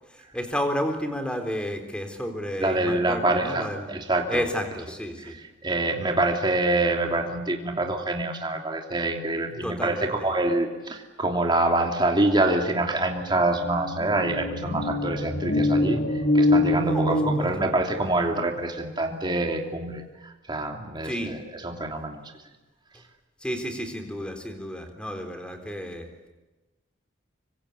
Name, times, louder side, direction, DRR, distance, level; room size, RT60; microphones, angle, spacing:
voice 1, 0.1-3.9 4.3-5.4 9.6-10.3 16.8-17.7 21.0-21.3 23.4-26.1, equal, 5° left, 6 dB, 3.7 m, -31 dB
voice 2, 2.6-4.4 5.6-16.0 16.3-21.4 21.6-22.2, right 2 dB, 25° right, 2 dB, 2.9 m, -26 dB
sound 1, 12.8-12.9 13.1-18.2, left 1 dB, 60° left, 4.1 m, -25 dB
26.0 x 25.5 x 8.5 m, 1.1 s
head